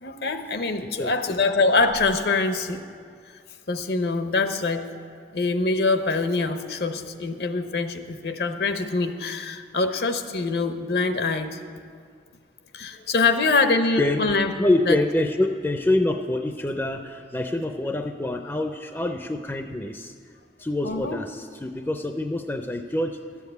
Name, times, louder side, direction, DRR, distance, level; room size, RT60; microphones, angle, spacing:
voice 1, 0.0-2.8 3.7-11.6 12.7-14.5 14.8-15.0 20.8-21.2, left 3 dB, 65° left, 8 dB, 0.8 m, -24 dB
voice 2, 14.6-20.1 20.6-23.2, left 1 dB, 15° left, 6 dB, 0.4 m, -26 dB
12.5 x 7.3 x 8.0 m, 2.1 s
head